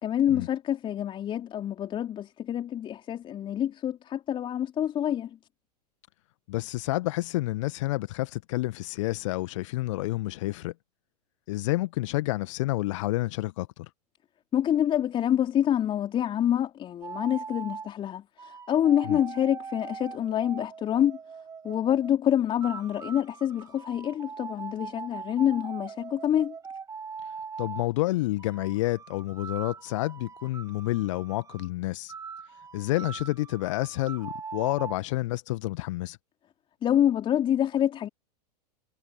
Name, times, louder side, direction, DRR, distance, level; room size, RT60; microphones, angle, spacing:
voice 1, 0.0-5.3 14.5-21.2 21.6-26.5 36.8-38.1, left 10 dB, 25° left, 4.2 m, -26 dB
voice 2, 6.5-10.7 11.5-13.9 19.0-19.2 27.6-32.1 32.7-36.2, left 18 dB, 50° left, 1.8 m, -29 dB
sound 1, 17.0-17.9 18.4-22.1 22.6-27.9 28.4-31.7 32.1-35.0, right 5 dB, 15° right, 5.9 m, -41 dB
figure-of-eight pair, 95°, 21 cm